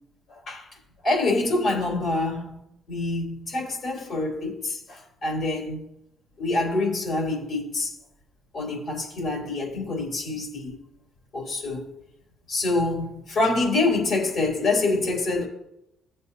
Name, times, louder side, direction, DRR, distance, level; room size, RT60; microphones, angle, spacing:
voice 1, 0.3-0.7 1.0-2.6 2.9-5.8 6.4-7.9 8.5-10.8 11.3-11.9 12.5-15.5, left 2 dB, 60° left, 3.6 m, -26 dB
15.5 x 7.6 x 2.8 m
cardioid pair, 90°, 0 cm